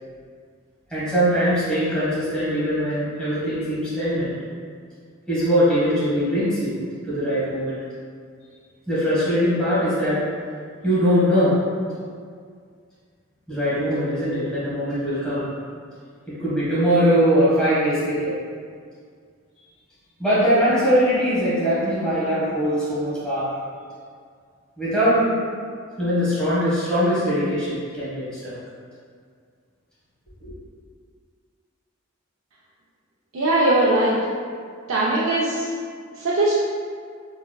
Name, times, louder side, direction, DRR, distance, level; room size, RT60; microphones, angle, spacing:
voice 1, 0.9-4.3 5.3-6.7 7.0-7.8 8.9-10.2 10.8-11.6 13.5-15.5 16.3-18.3 20.2-23.5 24.8-25.3 26.0-28.5 30.4-30.5, equal, 5° left, -11 dB, 1.4 m, -21 dB
voice 2, 33.3-34.2 34.9-35.7 36.2-36.5, right 1 dB, 80° right, -6 dB, 0.5 m, -20 dB
4.1 x 3.5 x 2.3 m, 2.1 s
head